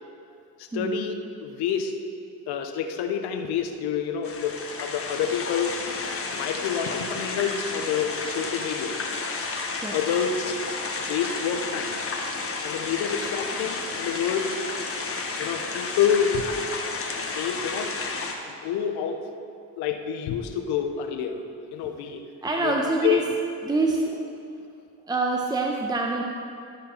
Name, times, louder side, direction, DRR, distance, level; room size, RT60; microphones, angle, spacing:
voice 1, 0.6-2.0 2.5-5.7 6.0-9.0 9.9-10.6 10.9-12.0 12.6-14.6 15.4-16.4 16.7-16.8 17.3-17.9 18.4-19.2 19.8-21.4 21.7-22.2 22.6-22.7 23.0-23.2, left 8 dB, 70° left, 6 dB, 0.9 m, -28 dB
sound 1, 4.2-18.3, left 4 dB, 30° left, 1.4 m, -32 dB
voice 2, 22.4-23.2 23.6-24.2 25.1-26.2, right 2 dB, 10° right, 1 dB, 0.8 m, -25 dB
13.0 x 5.2 x 4.4 m, 2.5 s
supercardioid pair, 70°, 42 cm